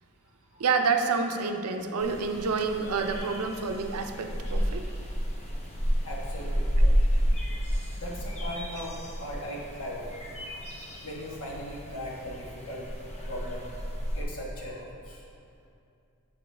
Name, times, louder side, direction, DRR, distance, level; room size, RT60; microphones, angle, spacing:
voice 1, 0.6-4.9 6.8-6.9, right 4 dB, 85° right, 5 dB, 0.5 m, -28 dB
sound 1, 2.0-14.2, equal, 30° left, 0.7 m, -30 dB
voice 2, 6.0-6.6 7.9-10.6 11.0-12.8 13.3-13.7 14.1-15.2, equal, 70° left, -3 dB, 1.3 m, -38 dB
7.2 x 5.3 x 3.3 m, 2.5 s
head